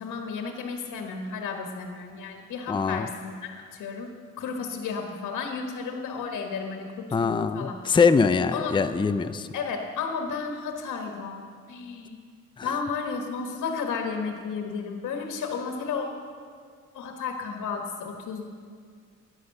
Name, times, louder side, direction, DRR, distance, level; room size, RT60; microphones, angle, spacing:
voice 1, 0.0-4.1 4.4-7.7 8.5-8.8 9.5-11.4 11.7-12.2 12.6-16.1 16.9-18.4, left 5 dB, 75° left, 2 dB, 1.5 m, -33 dB
voice 2, 2.7-3.1 7.1-9.5 12.6-12.7, left 5 dB, 15° left, 10 dB, 0.5 m, -23 dB
13.0 x 10.0 x 6.7 m, 2.1 s
cardioid pair, 90°, 30 cm